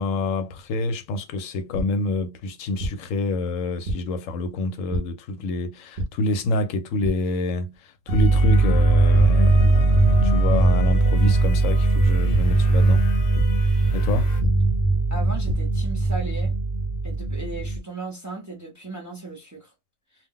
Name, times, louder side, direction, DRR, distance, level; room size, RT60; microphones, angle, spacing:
voice 1, 0.0-13.1 13.9-14.3, left 2 dB, 85° left, 1.0 m, -27 dB
sound 1, 1.7-1.8 2.8-2.9 3.9-4.0 4.9-5.0 6.0-6.1 7.0-7.1 7.6-7.7 8.1-8.2 9.1-9.2 10.2-10.3 11.2-11.3 12.3-12.4 13.3-13.4 14.4-14.5 15.2-15.5, right 1 dB, 50° right, 0.8 m, -26 dB
sound 2, 8.1-14.4, left 5 dB, 60° left, 0.8 m, -40 dB
sound 3, 8.1-17.8, right 2 dB, 35° left, 0.7 m, -19 dB
voice 2, 15.1-16.5 17.0-19.7, right 2 dB, 20° right, 0.6 m, -36 dB
2.3 x 2.2 x 3.6 m
omnidirectional pair, 1.3 m